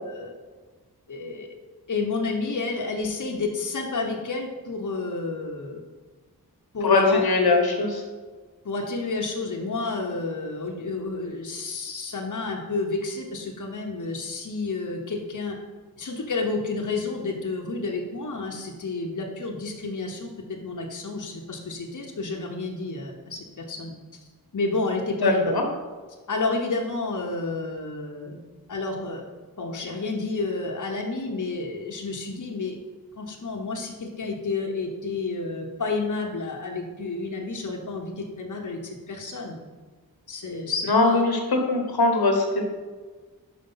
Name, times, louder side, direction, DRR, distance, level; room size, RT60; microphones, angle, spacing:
voice 1, 1.1-1.5 1.9-5.8 6.7-7.2 8.6-15.6 16.0-23.9 24.5-25.5 26.3-28.4 28.7-29.2 29.6-32.8 33.1-39.6 40.3-41.2, left 3 dB, 55° left, 0 dB, 1.0 m, -30 dB
voice 2, 6.8-8.0 25.2-25.6 40.9-41.4 41.7-42.7, left 3 dB, 75° left, 2 dB, 1.2 m, -21 dB
5.3 x 5.0 x 5.6 m, 1.4 s
cardioid pair, 45°, 37 cm